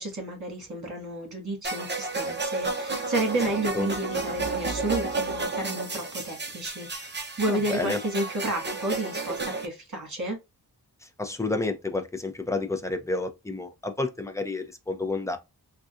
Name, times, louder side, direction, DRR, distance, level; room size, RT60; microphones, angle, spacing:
voice 1, 0.0-10.4, right 1 dB, 45° right, 1.7 m, -31 dB
sound 1, 1.6-9.7, right 3 dB, 30° right, 0.7 m, -32 dB
voice 2, 7.5-8.0 11.0-15.4, left 3 dB, 10° left, 0.5 m, -30 dB
3.8 x 2.4 x 2.5 m
wide cardioid pair, 95°, 39 cm